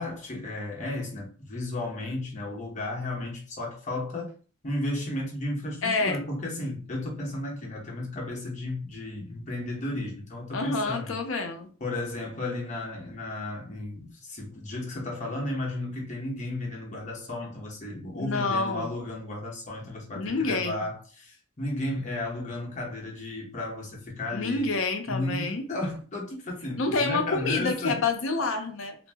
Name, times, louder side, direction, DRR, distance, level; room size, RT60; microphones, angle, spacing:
voice 1, 0.0-4.3 4.6-11.2 11.8-24.7 25.1-28.0, left 2 dB, 35° left, 0.8 m, -34 dB
voice 2, 5.8-6.2 10.5-11.7 18.2-18.9 20.2-20.8 24.3-25.7 26.8-29.0, left 3 dB, 75° left, 0.5 m, -28 dB
2.5 x 2.0 x 3.3 m
head